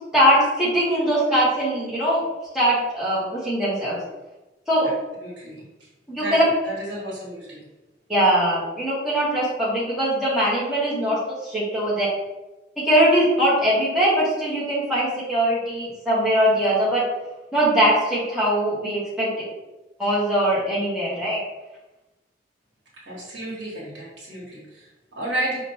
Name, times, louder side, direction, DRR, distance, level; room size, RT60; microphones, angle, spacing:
voice 1, 0.1-2.2 2.5-3.9 4.7-4.9 6.1-6.4 8.1-12.1 12.9-17.0 17.5-19.3 20.0-21.4, equal, 5° right, -10 dB, 1.3 m, -21 dB
voice 2, 5.2-5.6 6.2-6.3 6.6-7.6 23.0-25.6, right 1 dB, 90° right, -5 dB, 1.5 m, -32 dB
5.0 x 2.5 x 2.8 m, 1.1 s
head